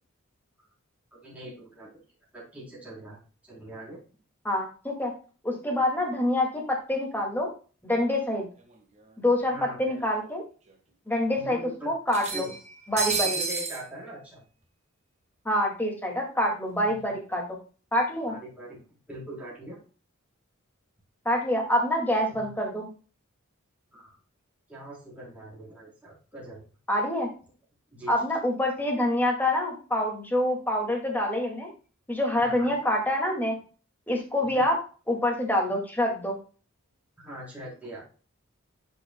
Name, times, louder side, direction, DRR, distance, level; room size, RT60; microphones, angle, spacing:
voice 1, 1.1-1.9 2.3-3.2 3.5-4.0 9.5-10.0 11.3-11.9 12.3-12.5 13.3-14.4 16.8-17.2 18.3-18.8 19.1-19.8 22.3-22.5 23.9-24.2 24.7-26.6 27.9-28.1 32.4-32.7 34.5-34.6 37.2-38.0, right 1 dB, 5° right, -6 dB, 3.5 m, -42 dB
voice 2, 4.4-5.1 5.4-7.5 7.8-8.5 9.2-10.4 11.1-11.6 11.9-12.5 12.9-13.4 15.5-17.4 17.9-18.4 21.3-22.9 26.9-27.3 28.1-31.7 32.1-33.6 34.1-34.8 35.1-36.4, left 1 dB, 10° left, 0 dB, 2.0 m, -26 dB
sound 1, 8.7-8.8 9.1-9.2 10.2-10.3 10.7-10.8 12.1-13.8, right 5 dB, 30° right, 1.4 m, -30 dB
10.5 x 5.4 x 2.2 m, 0.37 s
head